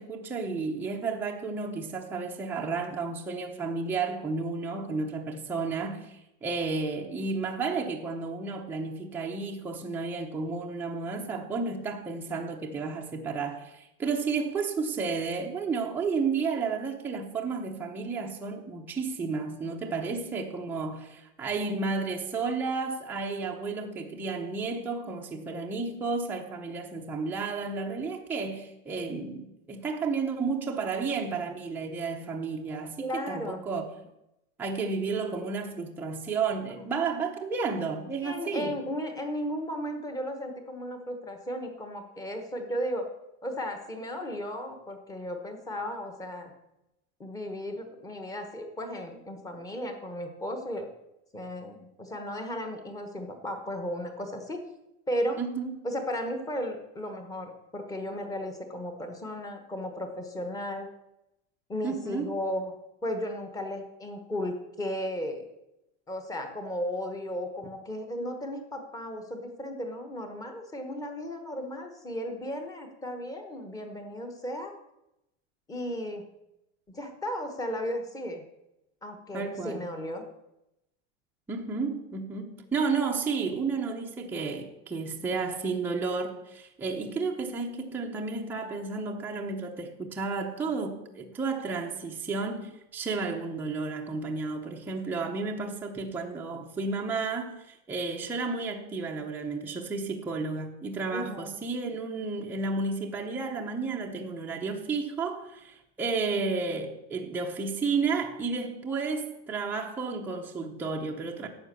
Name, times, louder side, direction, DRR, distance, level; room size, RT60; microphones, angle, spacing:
voice 1, 0.0-33.9 34.6-38.8 55.4-55.8 61.8-62.3 79.3-79.8 81.5-111.5, right 4 dB, 5° right, 0.7 m, -32 dB
voice 2, 33.0-33.6 36.6-36.7 38.2-43.1 43.4-46.5 47.2-50.9 51.3-54.6 55.1-55.4 55.8-60.9 61.7-62.7 63.0-65.4 66.1-74.7 75.7-76.3 76.9-78.4 79.0-80.2 101.1-101.6, equal, 10° left, 1.1 m, -35 dB
11.5 x 7.8 x 6.7 m
supercardioid pair, 180°, 34 cm